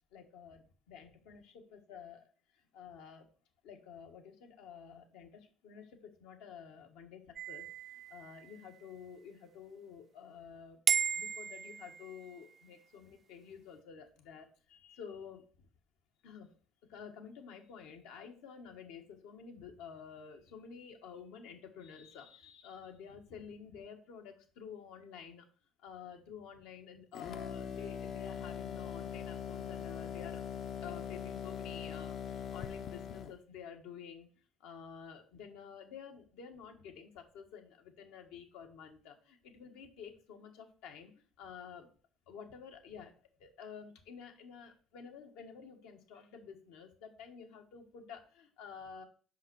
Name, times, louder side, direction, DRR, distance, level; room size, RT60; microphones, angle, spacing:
voice 1, 0.1-3.3 3.6-10.8 11.1-15.7 16.2-16.5 16.9-25.5 25.8-30.4 30.8-34.3 34.6-41.9 42.3-49.0, left 7 dB, 85° left, 3 dB, 1.5 m, -51 dB
sound 1, 7.4-8.9 10.9-12.5, right 7 dB, 40° right, 0.4 m, -35 dB
sound 2, 27.1-33.4, left 7 dB, 55° left, 0.6 m, -41 dB
5.6 x 5.5 x 6.2 m, 0.41 s
supercardioid pair, 95°, 0 cm